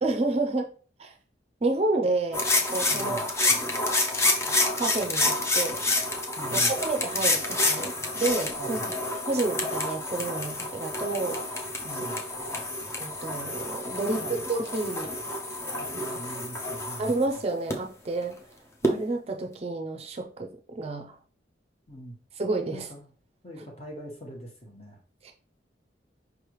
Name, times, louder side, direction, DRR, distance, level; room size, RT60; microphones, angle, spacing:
voice 1, 0.0-0.7 1.0-1.1 1.6-3.7 4.8-5.8 6.5-8.8 9.3-11.5 12.0-12.1 13.0-15.2 15.9-16.0 17.0-18.3 18.8-20.5 20.7-21.1 22.4-22.9 25.2-25.3, right 2 dB, 35° right, 4 dB, 0.5 m, -30 dB
sound 1, 2.3-17.7 18.8-18.9, left 2 dB, 15° left, 0.6 m, -28 dB
voice 2, 2.9-3.2 6.4-6.7 8.6-8.9 11.8-12.2 14.1-14.4 15.9-17.1 21.9-22.2 22.7-23.1 23.4-25.0, right 1 dB, 35° left, 0 dB, 1.3 m, -42 dB
5.1 x 3.2 x 3.0 m, 0.40 s
head